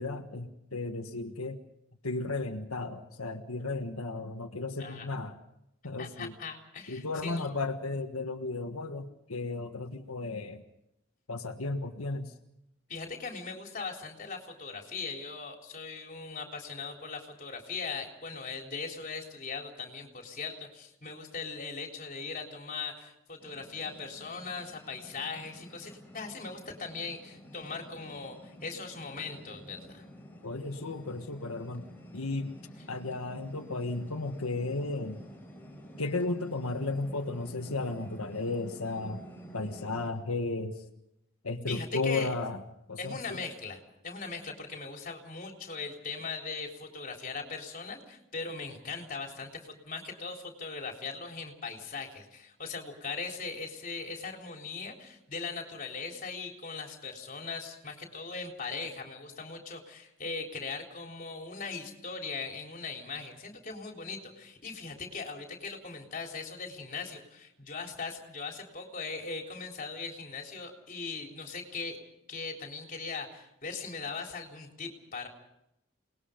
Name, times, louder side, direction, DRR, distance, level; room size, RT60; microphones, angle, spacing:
voice 1, 0.0-1.6 2.0-5.4 5.8-6.3 6.9-10.6 11.3-12.3 30.4-31.8 32.1-32.5 32.9-35.2 36.0-39.2 39.5-40.8 41.4-42.6 42.9-43.4, left 3 dB, 90° left, 4 dB, 1.6 m, -34 dB
voice 2, 6.0-7.5 12.9-30.1 41.7-42.3 43.0-72.0 72.3-75.3, left 4 dB, 40° left, 2 dB, 3.8 m, -39 dB
sound 1, 23.4-40.1, equal, 10° left, 5.0 m, -50 dB
28.5 x 20.5 x 5.2 m, 0.82 s
head